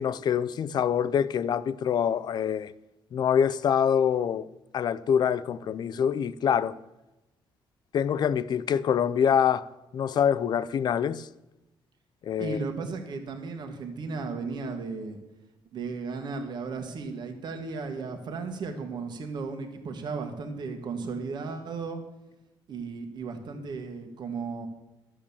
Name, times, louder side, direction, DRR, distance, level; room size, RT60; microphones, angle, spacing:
voice 1, 0.0-2.7 3.1-4.5 4.7-6.8 7.9-9.7 9.9-11.3 12.2-12.6, left 8 dB, 50° left, 0.5 m, -25 dB
voice 2, 12.4-15.2 15.7-22.0 22.7-24.7, right 4 dB, 55° right, 1.6 m, -35 dB
12.5 x 7.5 x 7.1 m
cardioid pair, 125°, 9 cm